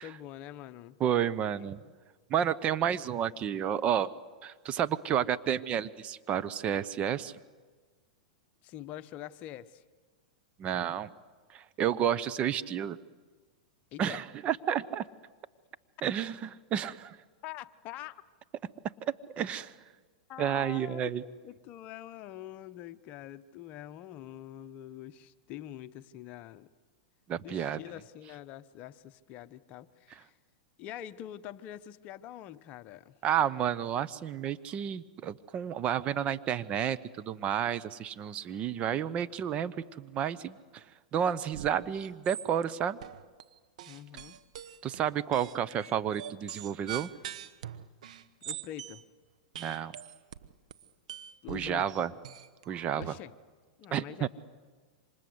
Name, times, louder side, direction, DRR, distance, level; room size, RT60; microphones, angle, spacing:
voice 1, 0.0-1.0 1.7-1.9 5.1-5.4 8.6-9.8 13.9-14.2 17.4-18.2 20.3-21.2 21.4-26.7 27.4-30.3 30.8-33.2 43.9-44.4 48.4-49.0 51.4-52.0 53.0-53.3 53.8-54.3, left 12 dB, 40° left, 12 dB, 1.0 m, -45 dB
voice 2, 1.0-1.8 2.3-4.1 4.4-7.3 10.6-11.1 11.5-13.0 14.0-15.1 16.0-17.2 19.0-19.7 20.4-21.2 27.3-27.8 33.2-40.8 41.1-43.0 44.8-47.1 49.6-49.9 51.5-52.1 52.7-53.1 53.9-54.3, right 9 dB, 35° right, 13 dB, 0.9 m, -31 dB
sound 1, 41.5-41.8 42.0-42.6 43.0-43.4 43.8-49.0 49.6-53.1, right 10 dB, 70° right, 1.3 m, -43 dB
28.5 x 26.0 x 8.0 m, 1.4 s
hypercardioid pair, 115°, 4 cm